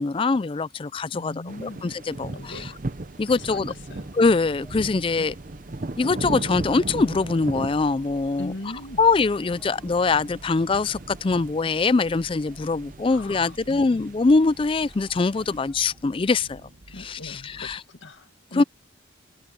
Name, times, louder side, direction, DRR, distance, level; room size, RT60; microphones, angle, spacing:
voice 1, 0.0-1.3 1.6-2.7 3.2-3.7 4.1-5.3 6.0-8.5 9.0-16.6 17.0-17.8 18.5-18.6, left 3 dB, 25° left, 0.3 m, -23 dB
voice 2, 1.1-1.8 2.3-2.8 3.3-4.1 5.2-5.3 8.4-9.0 13.1-14.1 16.9-18.6, left 2 dB, 70° left, 2.0 m, -39 dB
sound 1, 1.5-15.7, right 2 dB, 40° right, 0.8 m, -38 dB
sound 2, 2.3-17.8, right 1 dB, 70° right, 1.4 m, -50 dB
sound 3, 2.5-16.0, equal, ahead, 5.9 m, -59 dB
head